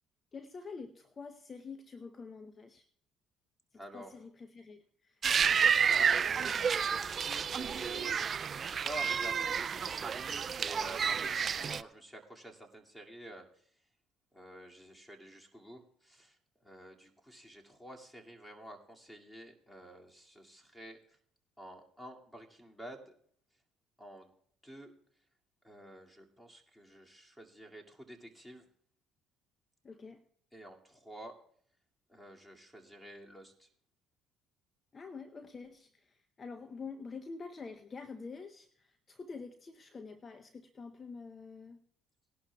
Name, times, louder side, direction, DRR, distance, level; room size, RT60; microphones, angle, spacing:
voice 1, 0.3-2.9 3.9-5.2 29.8-30.2 34.9-41.8, left 4 dB, 35° left, 8 dB, 0.8 m, -47 dB
voice 2, 3.7-4.2 5.8-8.2 8.4-13.7 14.3-21.2 21.6-23.2 24.0-24.3 24.6-24.9 25.6-28.7 30.5-31.3 32.1-33.7, right 1 dB, 5° left, 1 dB, 2.4 m, -50 dB
sound 1, 5.2-11.8, right 7 dB, 45° right, 0.4 m, -30 dB
19.5 x 11.5 x 2.3 m, 0.62 s
supercardioid pair, 70°, 0 cm